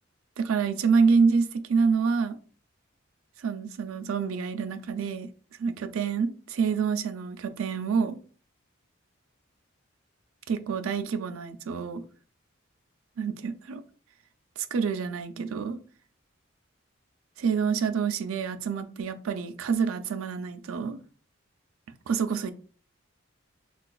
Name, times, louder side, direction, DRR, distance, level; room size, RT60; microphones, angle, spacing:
voice 1, 0.4-2.4 3.4-5.3 5.6-8.2 10.5-12.0 13.2-13.8 14.6-15.8 17.4-21.0 22.1-22.5, right 5 dB, 90° right, 0.4 m, -27 dB
3.8 x 2.3 x 2.3 m
head